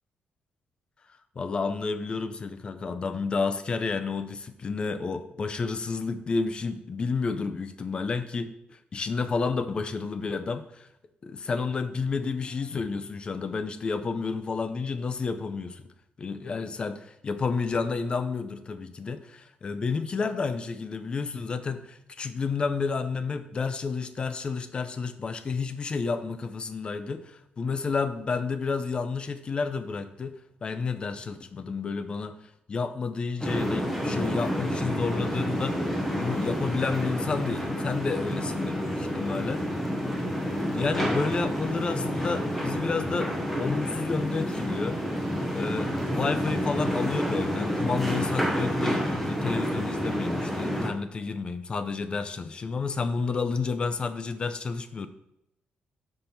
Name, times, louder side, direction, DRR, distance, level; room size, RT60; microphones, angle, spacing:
voice 1, 1.4-10.9 11.2-15.9 16.2-30.3 30.6-32.4 32.7-39.6 40.7-45.0 45.5-55.1, left 4 dB, 30° left, 10 dB, 0.4 m, -30 dB
sound 1, 33.4-50.9, equal, 5° left, 0.9 m, -29 dB
5.3 x 4.4 x 5.5 m, 0.83 s
wide cardioid pair, 175°, 3 cm